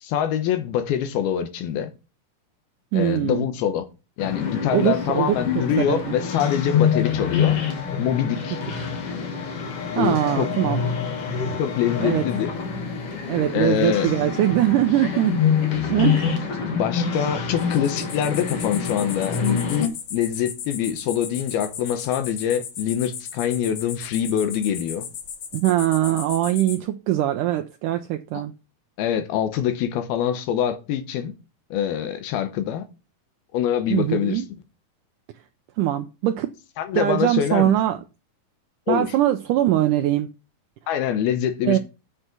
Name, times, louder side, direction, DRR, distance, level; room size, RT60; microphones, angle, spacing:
voice 1, 0.0-1.9 2.9-3.9 4.2-7.6 8.0-8.6 9.9-10.5 11.6-12.5 13.5-14.1 16.8-25.1 29.0-31.3 31.7-32.8 33.5-34.4 36.8-37.8 38.9-39.1 40.9-41.8, left 9 dB, 85° left, 3.0 m, -24 dB
voice 2, 2.9-3.5 4.7-5.6 5.9-6.2 10.0-10.9 12.0-12.2 13.3-15.4 15.9-16.5 25.5-28.5 33.9-34.5 35.8-36.5 36.9-38.0 38.9-40.3 41.6-41.8, right 13 dB, 85° right, 1.9 m, -22 dB
sound 1, 4.2-19.9, left 7 dB, 50° left, 2.1 m, -26 dB
sound 2, 17.6-26.8, left 8 dB, 65° left, 1.6 m, -36 dB
7.4 x 6.7 x 6.0 m
omnidirectional pair, 4.3 m